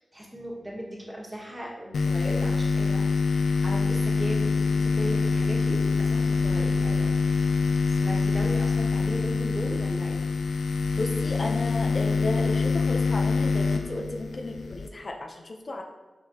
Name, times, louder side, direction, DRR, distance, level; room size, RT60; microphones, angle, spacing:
voice 1, 0.1-7.1 8.0-10.3, equal, 20° right, -4 dB, 1.9 m, -37 dB
sound 1, 1.9-14.9, left 4 dB, 85° left, 0.5 m, -25 dB
voice 2, 11.0-15.8, left 2 dB, 50° left, 2 dB, 0.7 m, -33 dB
6.8 x 4.8 x 3.0 m, 1.3 s
cardioid pair, 45°, 0 cm